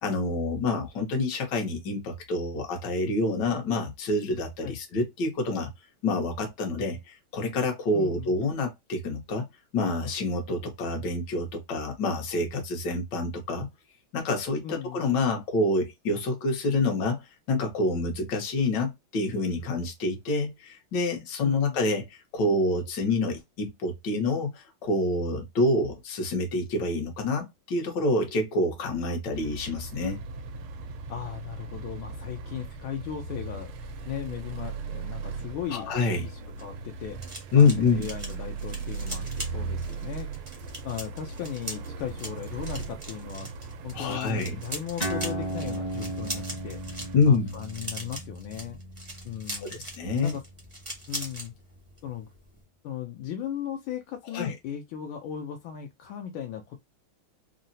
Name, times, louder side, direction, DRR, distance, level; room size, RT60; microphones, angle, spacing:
voice 1, 0.0-5.7 6.0-7.0 7.3-9.5 9.7-13.7 14.1-17.2 17.5-30.2 35.7-36.3 37.5-38.1 43.9-44.6 47.1-47.5 49.5-50.4 54.3-54.5, left 2 dB, 60° left, 1.4 m, -27 dB
voice 2, 7.9-8.3 14.6-15.2 21.4-21.8 31.1-37.2 37.5-40.6 40.8-43.5 43.8-48.8 49.2-49.8 50.2-50.4 51.1-51.5 52.0-52.3 52.8-56.8, left 9 dB, 80° left, 1.4 m, -37 dB
sound 1, 29.3-47.2, right 4 dB, 90° right, 1.5 m, -38 dB
sound 2, 36.3-51.5 51.8-52.1 52.3-52.6, right 1 dB, 55° right, 0.3 m, -40 dB
sound 3, 45.0-51.9, right 1 dB, 35° left, 0.6 m, -37 dB
3.7 x 2.0 x 2.6 m
omnidirectional pair, 2.3 m